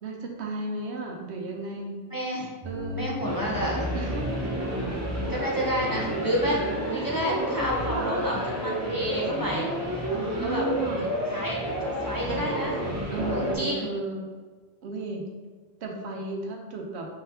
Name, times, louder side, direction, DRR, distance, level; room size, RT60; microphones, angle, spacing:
voice 1, 0.0-2.0 2.6-3.1 3.9-4.3 5.6-6.2 7.9-8.1 10.1-11.1 12.3-12.5 13.1-14.2 14.8-15.2 15.8-17.1, right 3 dB, 90° right, 1 dB, 1.0 m, -34 dB
voice 2, 2.1-2.5 2.9-3.8 5.3-9.7 10.4-10.6 11.3-12.7 13.3-13.9 15.9-16.0, equal, 25° left, -4 dB, 0.6 m, -30 dB
sound 1, 2.6-13.6, equal, 20° right, 0.7 m, -30 dB
4.6 x 3.8 x 2.8 m, 1.4 s
omnidirectional pair, 1.1 m